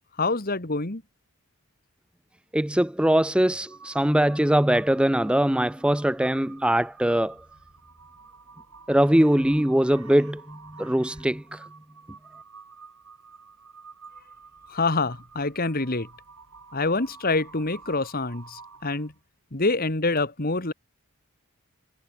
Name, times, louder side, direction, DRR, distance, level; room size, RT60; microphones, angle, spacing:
voice 1, 0.2-1.0 14.7-16.1 16.7-19.1 19.5-20.7, left 3 dB, 40° left, 2.0 m, -26 dB
voice 2, 2.5-7.4 8.9-11.6, right 1 dB, 5° right, 0.5 m, -22 dB
Crow, 3.7-19.2, right 5 dB, 80° right, 6.7 m, -49 dB
head